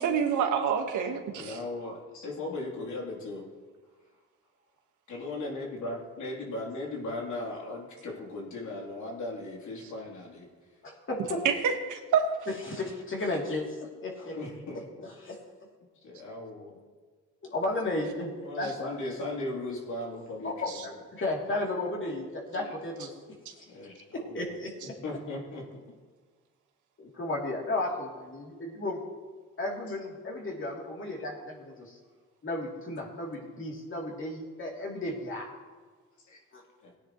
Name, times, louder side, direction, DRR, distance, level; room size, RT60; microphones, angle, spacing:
voice 1, 0.0-1.6 11.4-12.3 20.7-20.8, right 7 dB, 80° right, 4 dB, 1.5 m, -27 dB
voice 2, 1.4-3.5 5.1-10.5 14.2-14.8 16.0-16.8 18.4-21.0 22.6-22.7 23.7-24.5 25.0-25.6 31.3-31.4 36.2-36.4 36.8-36.9, left 2 dB, 75° left, -2 dB, 3.3 m, -37 dB
voice 3, 10.8-11.4 12.7-13.6 14.0-14.4 15.2-15.4 17.4-18.3 18.6-18.7 20.4-20.7 21.1-23.1 23.6-24.9 27.0-29.0 29.6-32.0 32.4-35.6 36.5-36.6, left 2 dB, 40° left, -2 dB, 3.1 m, -34 dB
18.0 x 9.7 x 3.1 m, 1.5 s
cardioid pair, 90°, 30 cm